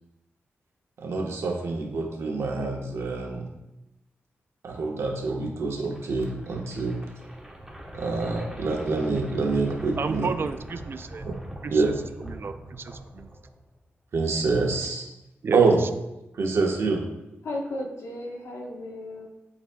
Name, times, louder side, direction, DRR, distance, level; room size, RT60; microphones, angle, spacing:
voice 1, 1.0-3.4 4.6-7.0 7.9-10.3 11.2-11.3 11.7-11.9 14.1-15.0 15.5-15.8 16.4-17.0, right 4 dB, 75° right, 0 dB, 1.2 m, -26 dB
sound 1, 5.8-13.8, right 1 dB, 10° right, 1.2 m, -42 dB
voice 2, 10.0-11.3 11.6-11.8 12.2-13.3 15.4-15.6, right 5 dB, 55° right, 10 dB, 0.4 m, -32 dB
voice 3, 17.4-19.3, left 1 dB, 80° left, 0 dB, 1.2 m, -34 dB
11.0 x 4.2 x 2.3 m, 0.92 s
cardioid pair, 80°, 5 cm